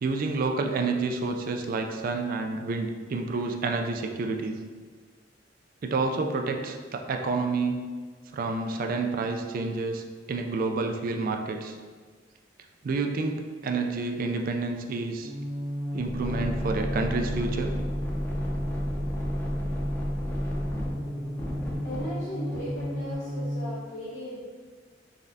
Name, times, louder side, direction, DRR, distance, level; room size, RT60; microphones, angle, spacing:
voice 1, 0.0-4.5 5.8-7.8 8.3-11.8 12.8-15.3 15.9-17.7, right 3 dB, 50° right, 4 dB, 0.3 m, -29 dB
sound 1, 15.2-23.8, equal, 15° left, 0.6 m, -31 dB
voice 2, 21.8-24.5, equal, 60° left, -11 dB, 1.0 m, -37 dB
4.0 x 3.4 x 2.6 m, 1.5 s
head